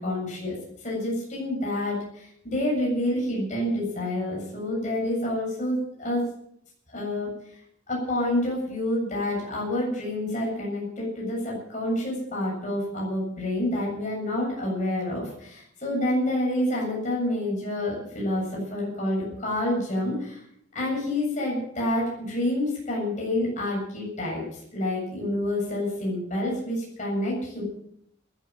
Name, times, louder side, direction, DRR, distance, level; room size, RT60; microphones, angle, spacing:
voice 1, 0.0-6.2 6.9-7.3 7.9-20.4 20.7-27.6, left 1 dB, 35° left, -3 dB, 7.6 m, -28 dB
15.0 x 12.0 x 7.7 m, 0.71 s
head